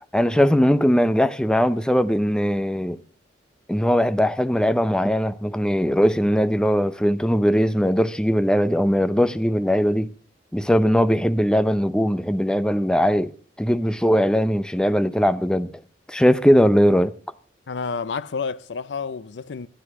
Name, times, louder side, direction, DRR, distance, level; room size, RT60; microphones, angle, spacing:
voice 1, 0.1-3.0 3.7-10.1 10.5-13.3 13.6-15.7 16.1-17.1, equal, 5° left, 0.6 m, -20 dB
voice 2, 17.7-19.7, left 5 dB, 80° left, 0.5 m, -29 dB
12.5 x 10.0 x 6.0 m
head